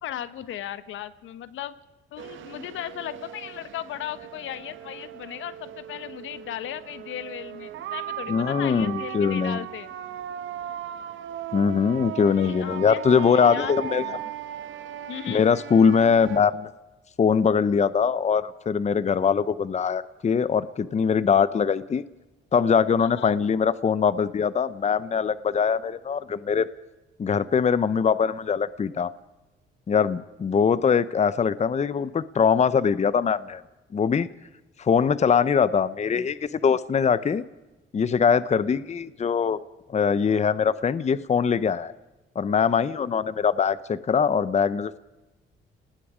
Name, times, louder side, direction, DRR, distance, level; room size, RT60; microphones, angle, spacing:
voice 1, 0.0-1.8 2.1-9.9 12.3-14.2 15.1-15.5 23.0-23.4, left 11 dB, 80° left, 13 dB, 1.3 m, -36 dB
sound 1, 2.2-16.4, right 11 dB, 75° right, 1.4 m, -37 dB
voice 2, 8.3-9.6 11.5-14.2 15.3-16.7 17.2-22.0 22.5-26.7 27.2-29.1 29.9-33.6 33.9-34.3 34.8-37.4 37.9-39.6 39.9-41.9 42.3-45.0, left 6 dB, 35° left, 16 dB, 0.8 m, -22 dB
29.5 x 19.5 x 5.1 m, 1.1 s
cardioid pair, 90°, 20 cm